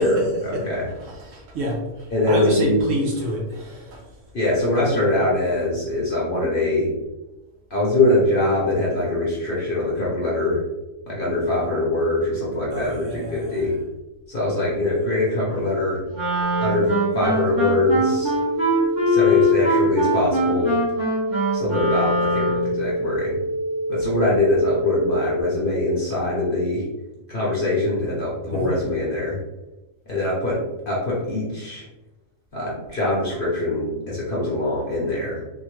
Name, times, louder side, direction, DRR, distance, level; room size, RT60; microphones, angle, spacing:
voice 1, 0.0-0.7 1.0-4.0 12.7-13.7 28.5-28.8, right 1 dB, 65° right, -3 dB, 1.1 m, -27 dB
voice 2, 2.1-2.8 4.3-6.9 7.7-10.6 11.1-13.7 14.3-16.0 16.6-18.3 19.0-20.8 21.5-23.4 23.9-26.9 27.3-29.4 30.1-31.8 32.5-35.4, left 2 dB, 45° left, -6 dB, 0.8 m, -23 dB
Wind instrument woodwind instrument, 16.1-22.8, left 1 dB, 35° right, 1.1 m, -22 dB
sound 1, 16.4-25.4, right 1 dB, 65° left, 0.5 m, -27 dB
3.6 x 2.1 x 3.1 m, 1.0 s
omnidirectional pair, 1.6 m